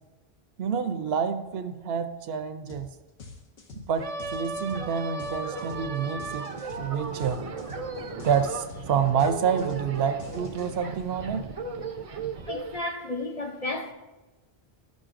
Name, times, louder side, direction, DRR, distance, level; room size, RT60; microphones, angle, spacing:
voice 1, 0.6-2.9 3.7-6.5 6.8-7.4 8.2-11.5, right 7 dB, 75° right, 9 dB, 0.8 m, -28 dB
sound 1, 2.7-2.9 3.2-11.0, left 4 dB, 75° left, 1.2 m, -45 dB
sound 2, 4.0-12.8, right 4 dB, 45° right, 0.5 m, -36 dB
voice 2, 12.4-13.9, left 2 dB, 45° left, 2 dB, 0.6 m, -32 dB
12.0 x 6.3 x 2.5 m, 1.1 s
omnidirectional pair, 1.1 m